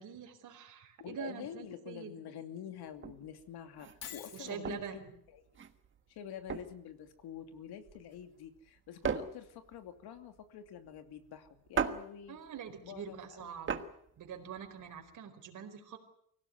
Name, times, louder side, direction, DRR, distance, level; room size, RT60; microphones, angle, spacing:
voice 1, 0.0-2.1 4.3-5.1 12.3-13.8 14.2-16.0, right 8 dB, 55° right, 4 dB, 4.7 m, -45 dB
voice 2, 1.0-4.8 5.3-5.4 6.1-12.4 12.8-13.5, left 9 dB, 85° left, 8 dB, 2.8 m, -47 dB
sound 1, 2.9-15.2, right 6 dB, 30° right, 1.5 m, -40 dB
Shatter, 4.0-4.6, left 9 dB, 40° left, 1.4 m, -46 dB
24.5 x 17.0 x 9.5 m, 0.70 s
cardioid pair, 170°, 38 cm